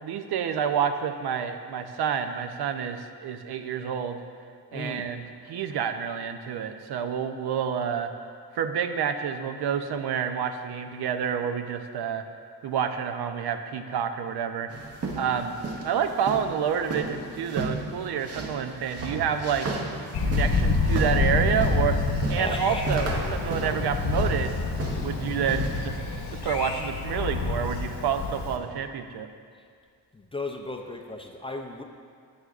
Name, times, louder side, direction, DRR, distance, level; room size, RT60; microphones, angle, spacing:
voice 1, 0.0-4.2 4.7-8.1 8.5-12.3 12.6-14.7 15.2-15.6 15.8-19.7 20.2-22.0 22.3-24.6 25.0-26.0 26.3-29.3, right 7 dB, 70° right, 8 dB, 0.6 m, -28 dB
voice 2, 4.7-5.1 22.4-22.8 30.1-31.8, left 2 dB, 15° left, 2 dB, 0.4 m, -35 dB
sound 1, 14.7-25.9, right 2 dB, 40° right, 0.8 m, -35 dB
Thunder, 20.1-28.6, left 3 dB, 85° left, 1.2 m, -27 dB
14.0 x 7.9 x 2.4 m, 2.2 s
wide cardioid pair, 145°, 40 cm